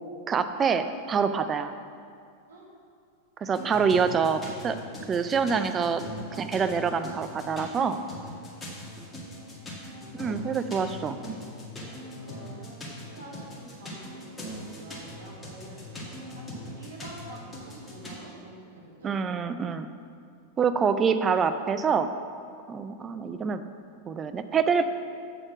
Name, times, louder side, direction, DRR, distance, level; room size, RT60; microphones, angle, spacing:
voice 1, 0.3-1.8 3.4-4.8 5.1-6.0 6.4-8.0 10.1-11.2 19.0-19.9 20.6-22.1 22.7-23.6 24.1-24.9, right 6 dB, 25° right, 10 dB, 0.5 m, -26 dB
sound 1, 3.5-18.2, equal, 15° left, 1.7 m, -41 dB
voice 2, 9.4-10.1 12.1-19.1, right 1 dB, 70° right, -5 dB, 2.4 m, -47 dB
7.8 x 6.5 x 5.8 m, 2.2 s
figure-of-eight pair, 90°, 0 cm